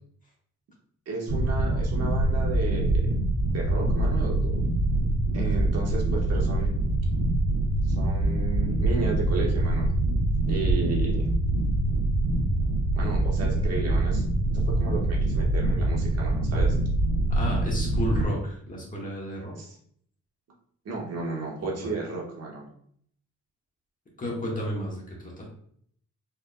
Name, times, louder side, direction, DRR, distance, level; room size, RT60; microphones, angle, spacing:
voice 1, 1.1-3.1 3.5-4.6 5.3-6.7 7.8-9.9 10.5-11.3 12.9-14.2 14.5-16.8 19.6-19.7 20.8-22.7, right 3 dB, 55° right, -2 dB, 1.4 m, -33 dB
sound 1, 1.3-18.2, right 1 dB, 75° right, 1.0 m, -24 dB
voice 2, 17.3-19.5 21.6-21.9 24.2-25.5, equal, 25° left, -3 dB, 1.6 m, -32 dB
4.5 x 3.5 x 2.3 m, 0.63 s
cardioid pair, 90°, 30 cm